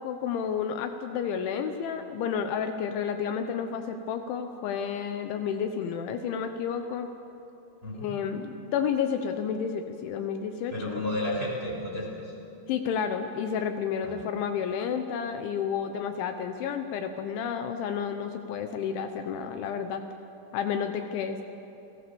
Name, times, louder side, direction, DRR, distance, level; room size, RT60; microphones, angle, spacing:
voice 1, 0.0-7.1 7.9-11.0 12.7-20.0 20.5-21.4, left 7 dB, 75° left, 7 dB, 3.2 m, -31 dB
voice 2, 7.8-8.1 10.7-12.3 14.0-14.1, left 1 dB, 10° right, -3 dB, 4.2 m, -32 dB
29.0 x 19.0 x 7.0 m, 2.9 s
omnidirectional pair, 5.7 m